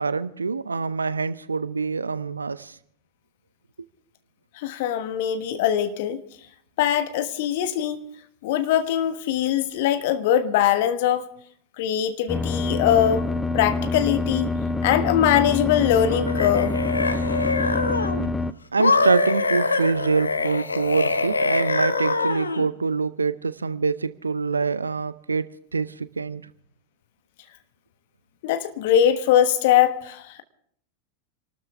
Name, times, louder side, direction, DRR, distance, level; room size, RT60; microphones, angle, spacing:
voice 1, 0.0-2.8 18.7-26.4, right 4 dB, 75° right, 0.6 m, -25 dB
voice 2, 4.6-6.2 6.8-8.0 8.4-11.2 11.8-13.3 13.5-14.5 14.8-16.8 28.4-30.4, left 10 dB, 50° left, 1.3 m, -22 dB
sound 1, 12.3-18.5, left 3 dB, 10° left, 0.6 m, -26 dB
sound 2, 16.1-18.3 18.8-22.7, left 3 dB, 75° left, 0.9 m, -24 dB
27.0 x 13.0 x 3.5 m
figure-of-eight pair, 90°, 0 cm